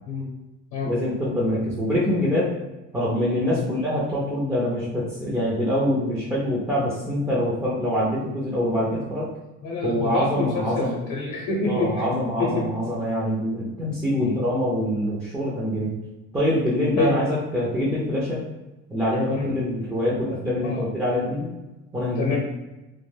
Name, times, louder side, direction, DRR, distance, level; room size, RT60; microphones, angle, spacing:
voice 1, 0.8-2.5 2.9-9.3 9.8-11.0 11.7-15.9 16.3-18.4 18.9-21.5 21.9-22.4, left 1 dB, 10° right, -9 dB, 0.4 m, -24 dB
voice 2, 9.6-12.0 12.4-12.6 14.2-14.4 17.0-17.2 19.3-19.6 20.6-20.8 22.2-22.4, left 3 dB, 75° left, -2 dB, 0.7 m, -27 dB
2.2 x 2.1 x 3.2 m, 1.0 s
cardioid pair, 145°, 31 cm